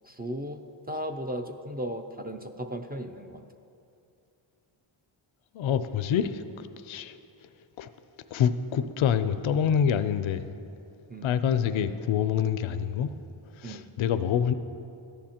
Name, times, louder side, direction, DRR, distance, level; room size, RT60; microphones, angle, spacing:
voice 1, 0.0-3.4 11.1-11.4 13.6-13.9, equal, 20° right, 5 dB, 0.4 m, -36 dB
voice 2, 5.5-6.4 6.8-7.2 7.8-7.9 8.3-10.5 11.2-13.1 13.6-14.5, left 8 dB, 75° left, 12 dB, 0.5 m, -26 dB
13.5 x 11.0 x 2.9 m, 2.6 s
wide cardioid pair, 85°, 49 cm